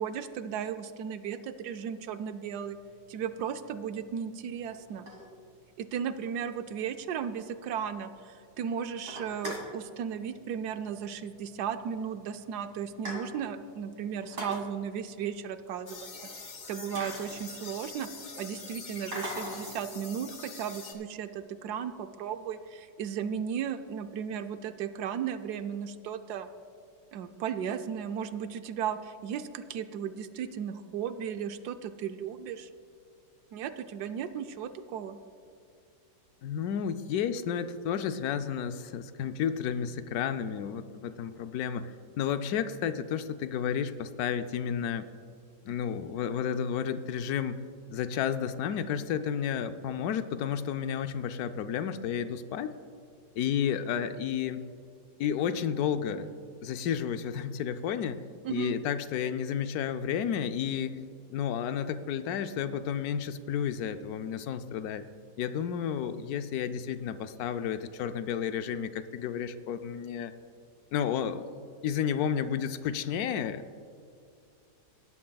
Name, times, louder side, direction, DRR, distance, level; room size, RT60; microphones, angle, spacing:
voice 1, 0.0-2.8 3.1-5.1 5.8-16.1 16.7-18.1 18.4-26.5 27.1-32.7 33.5-35.2 58.4-58.7, right 8 dB, 75° right, 9 dB, 1.1 m, -35 dB
sound 1, 2.8-3.0 3.7-3.8 4.7-5.7 6.1-6.2 6.5-6.6 6.9-7.0 7.3-7.4 7.8-8.2 8.6-8.7 9.0-9.8 10.9-11.1 11.4-11.5 12.2-12.3 12.6-13.6 14.2-14.6 16.3-16.4 16.9-18.0 19.1-19.8, equal, 45° right, 2.2 m, -40 dB
sound 2, 15.9-20.9, left 4 dB, 40° left, 1.4 m, -44 dB
voice 2, 36.4-45.1 45.6-47.6 47.9-52.8 53.4-54.6 55.2-56.3 56.6-58.2 58.5-61.0 61.3-65.1 65.4-70.3 70.9-73.6, left 8 dB, 70° left, 10 dB, 0.9 m, -31 dB
18.0 x 11.0 x 2.3 m, 2.4 s
omnidirectional pair, 1.8 m